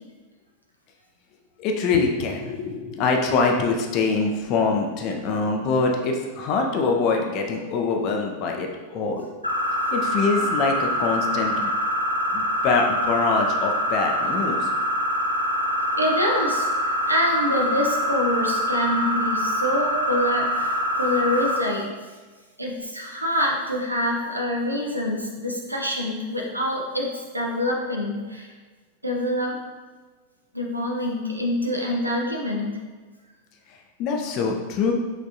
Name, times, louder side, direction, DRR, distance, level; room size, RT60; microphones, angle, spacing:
voice 1, 1.6-9.3 9.9-11.7 12.3-14.7 34.0-34.9, left 4 dB, 40° left, 2 dB, 0.5 m, -24 dB
sound 1, 9.4-21.6, equal, 90° left, 0.4 m, -25 dB
voice 2, 16.0-21.8 22.6-28.5 29.0-29.6 30.5-32.7, left 1 dB, 85° right, -1 dB, 0.6 m, -26 dB
5.1 x 3.5 x 2.7 m, 1.3 s
figure-of-eight pair, 90°, 0 cm